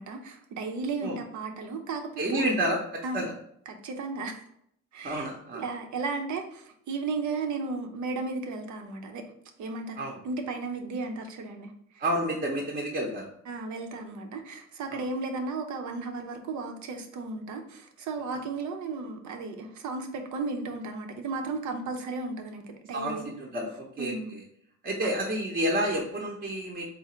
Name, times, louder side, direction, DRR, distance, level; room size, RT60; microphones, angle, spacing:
voice 1, 0.0-2.4 3.0-3.2 3.7-4.4 4.9-5.3 5.5-9.2 9.6-12.0 13.5-23.3 24.0-24.3, right 3 dB, 70° right, 5 dB, 0.7 m, -34 dB
voice 2, 2.2-3.3 5.0-5.6 10.0-10.2 12.0-13.3 14.9-15.0 18.3-18.4 22.9-24.4 24.8-26.9, right 1 dB, 30° right, -1 dB, 0.7 m, -30 dB
3.8 x 2.1 x 4.2 m, 0.70 s
cardioid pair, 90°, 30 cm